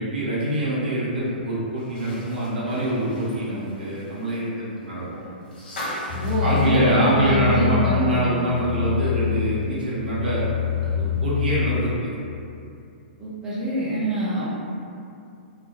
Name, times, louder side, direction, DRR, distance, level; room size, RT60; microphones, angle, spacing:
voice 1, 0.0-5.2 6.4-10.4 10.8-12.1, right 1 dB, 70° right, -7 dB, 0.7 m, -24 dB
sound 1, 1.8-7.8 8.1-8.2 9.6-9.7, equal, 65° left, 0.8 m, -39 dB
sound 2, 6.1-11.8, left 8 dB, 45° left, 0.4 m, -26 dB
voice 2, 6.1-8.3 13.2-14.4, equal, 10° right, -10 dB, 0.6 m, -26 dB
2.5 x 2.0 x 2.5 m, 2.5 s
figure-of-eight pair, 115°, 5 cm